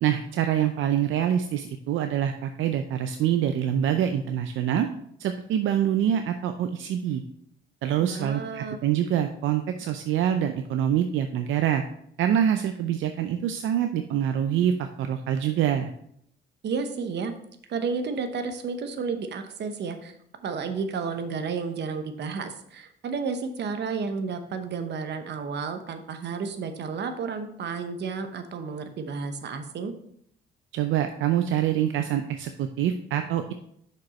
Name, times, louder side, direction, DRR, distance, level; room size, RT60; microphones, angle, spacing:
voice 1, 0.0-4.9 5.2-7.2 7.8-11.8 12.2-15.9 30.7-33.5, right 10 dB, 80° right, 7 dB, 0.5 m, -25 dB
voice 2, 8.0-8.8 16.6-17.3 17.7-20.1 20.4-29.9, right 5 dB, 60° right, 8 dB, 0.9 m, -32 dB
6.1 x 5.3 x 4.1 m, 0.70 s
cardioid pair, 90°, 20 cm